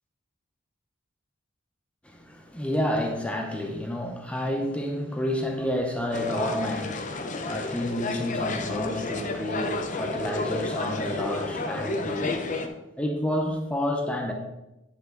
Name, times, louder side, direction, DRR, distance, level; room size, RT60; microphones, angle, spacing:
voice 1, 2.0-12.7 13.0-14.3, equal, 5° left, 2 dB, 0.8 m, -30 dB
sound 1, 6.1-12.7, left 3 dB, 40° left, 0.7 m, -31 dB
9.8 x 5.9 x 3.8 m, 0.93 s
head